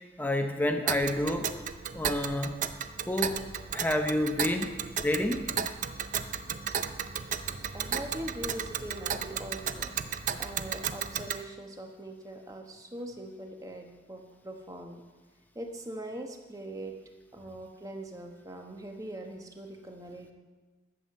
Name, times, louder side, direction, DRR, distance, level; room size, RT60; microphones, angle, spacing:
voice 1, 0.2-1.5 1.9-2.5 3.1-3.4 3.7-4.8 5.0-5.5, left 1 dB, 10° left, 5 dB, 0.7 m, -29 dB
Tick, 0.9-11.4, right 7 dB, 40° right, 0.5 m, -34 dB
voice 2, 7.7-10.0 10.4-15.0 15.5-17.0 17.3-20.3, right 1 dB, 20° right, 3 dB, 1.1 m, -42 dB
11.5 x 7.8 x 6.7 m, 1.3 s
head